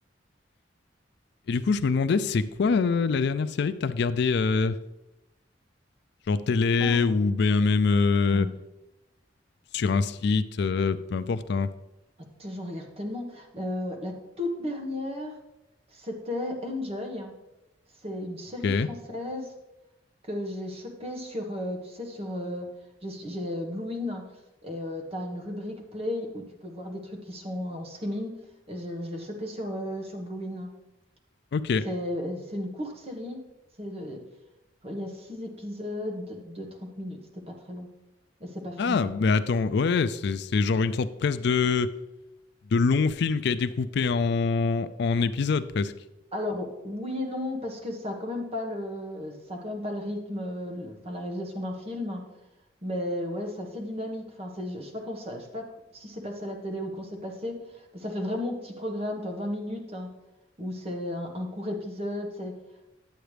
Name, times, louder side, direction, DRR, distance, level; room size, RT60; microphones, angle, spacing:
voice 1, 1.5-4.7 6.3-8.5 9.7-11.7 18.6-18.9 31.5-31.8 38.8-41.9 42.7-45.9, left 4 dB, 65° left, 14 dB, 0.4 m, -24 dB
voice 2, 6.8-7.1 8.3-8.5 12.4-15.3 15.9-17.3 18.0-19.5 20.2-22.7 23.0-24.2 24.6-28.3 28.7-30.7 31.8-33.4 33.8-34.2 34.8-37.9 38.4-39.0 46.3-52.2 52.8-55.7 55.9-57.6 57.9-60.1 60.6-62.5, left 1 dB, 35° right, 2 dB, 1.4 m, -34 dB
10.5 x 8.0 x 3.3 m, 0.95 s
head